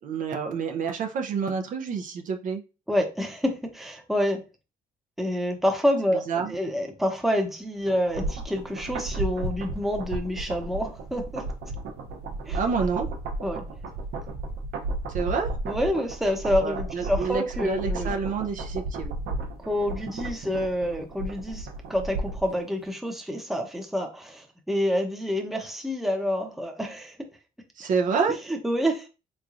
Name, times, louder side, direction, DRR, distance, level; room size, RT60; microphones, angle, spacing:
voice 1, 0.0-2.6 6.3-6.5 12.5-13.1 15.1-15.5 16.6-19.1 27.8-28.4, right 5 dB, 55° right, 4 dB, 0.5 m, -28 dB
voice 2, 2.9-4.4 5.2-11.5 12.5-12.6 13.4-13.6 15.7-18.1 19.6-27.2 28.5-29.1, equal, ahead, 3 dB, 0.7 m, -28 dB
sound 1, 7.9-22.5 22.8-22.9, right 2 dB, 85° right, 0.8 m, -33 dB
3.6 x 3.1 x 2.5 m, 0.31 s
cardioid pair, 105°, 16 cm